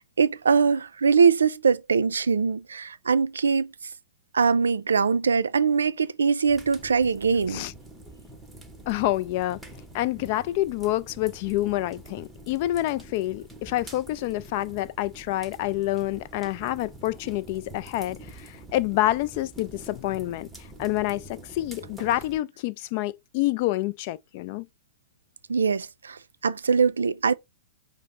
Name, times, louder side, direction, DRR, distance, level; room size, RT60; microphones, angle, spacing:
voice 1, 0.0-3.7 4.3-7.6 25.5-27.4, right 5 dB, 80° right, 0.4 m, -22 dB
sound 1, 6.5-22.4, right 1 dB, 5° right, 0.8 m, -46 dB
voice 2, 8.9-9.6 9.9-20.5 20.8-24.7, left 16 dB, 50° left, 0.3 m, -27 dB
5.1 x 2.0 x 3.8 m
figure-of-eight pair, 105°, 0 cm